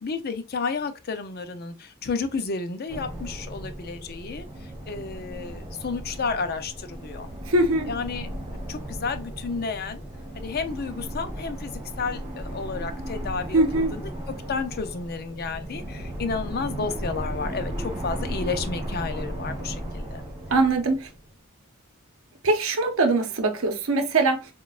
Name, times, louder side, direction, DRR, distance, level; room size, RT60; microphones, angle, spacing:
voice 1, 0.0-7.3 7.9-10.0 10.3-20.2, left 4 dB, 45° left, 0.5 m, -32 dB
sound 1, 2.9-21.3, right 1 dB, 20° right, 1.2 m, -35 dB
voice 2, 7.5-7.9 13.5-13.9 20.5-21.1 22.4-24.5, right 2 dB, 65° right, 0.8 m, -22 dB
6.1 x 2.3 x 2.4 m
head